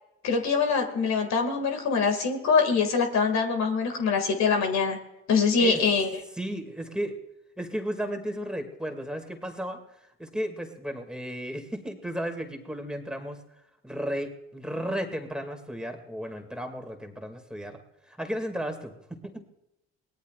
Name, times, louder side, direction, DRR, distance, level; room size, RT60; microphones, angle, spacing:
voice 1, 0.2-5.0 5.3-6.1, left 5 dB, 60° left, 5 dB, 2.3 m, -24 dB
voice 2, 6.3-7.2 7.6-9.8 10.2-13.4 13.8-17.8 18.1-19.4, equal, 5° right, 4 dB, 2.4 m, -34 dB
23.0 x 18.0 x 2.5 m, 0.91 s
supercardioid pair, 70°, 31 cm